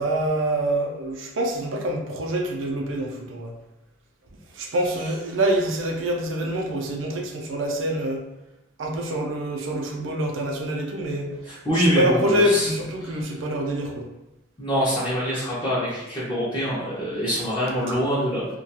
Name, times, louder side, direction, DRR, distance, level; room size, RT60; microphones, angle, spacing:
voice 1, 0.0-3.5 4.6-8.2 8.8-11.3 11.8-14.1, right 1 dB, 80° right, 2 dB, 0.4 m, -25 dB
voice 2, 11.4-12.7 13.0-13.2 14.6-18.5, equal, 25° left, -9 dB, 0.5 m, -25 dB
2.3 x 2.2 x 2.8 m, 0.93 s
head